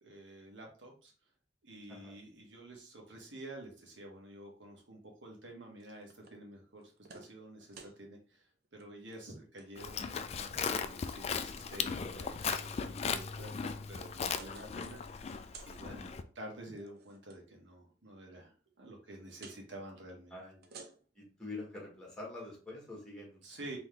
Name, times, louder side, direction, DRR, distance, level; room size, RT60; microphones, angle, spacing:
voice 1, 0.0-1.1 1.6-15.4 15.6-20.4 23.4-23.8, right 1 dB, 75° right, 1 dB, 1.4 m, -50 dB
sound 1, 5.8-6.4 6.8-7.3 7.6-8.0 8.6-8.8 9.1-9.7 10.3-10.9 11.4-11.5 12.4-12.7 13.5-14.9 15.1-15.8 16.6-17.4 19.4-19.6 20.5-21.2, right 4 dB, 55° right, 0.6 m, -54 dB
Livestock farm animals working animals, 9.8-16.2, left 6 dB, 35° left, 0.3 m, -37 dB
voice 2, 12.4-13.0 15.9-16.0 20.3-20.7 21.1-23.4, left 2 dB, 5° left, -2 dB, 1.6 m, -46 dB
3.9 x 3.1 x 3.3 m, 0.39 s
head